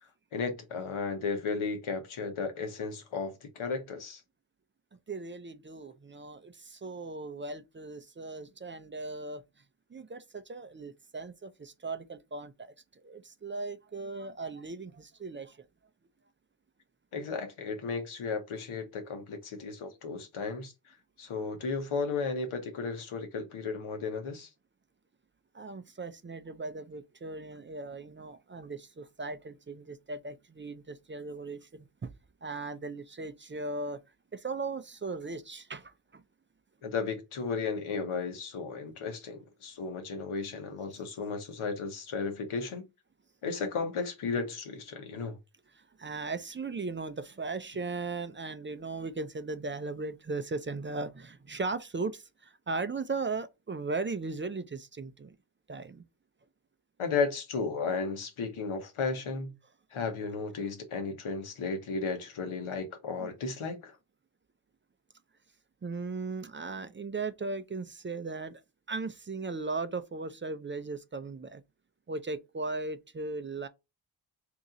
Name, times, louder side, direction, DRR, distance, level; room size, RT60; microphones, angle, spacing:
voice 1, 0.3-4.2 17.1-24.5 36.8-42.8 43.4-45.4 57.0-59.5 59.9-64.0, left 4 dB, 80° left, 1.1 m, -34 dB
voice 2, 5.1-9.4 9.9-15.6 25.5-32.1 32.4-34.0 34.3-36.2 45.8-55.3 55.7-56.0 63.2-63.3 65.8-68.6 68.9-71.6 72.1-73.7, right 3 dB, 25° right, 0.4 m, -37 dB
3.0 x 2.6 x 3.7 m
cardioid pair, 40°, 49 cm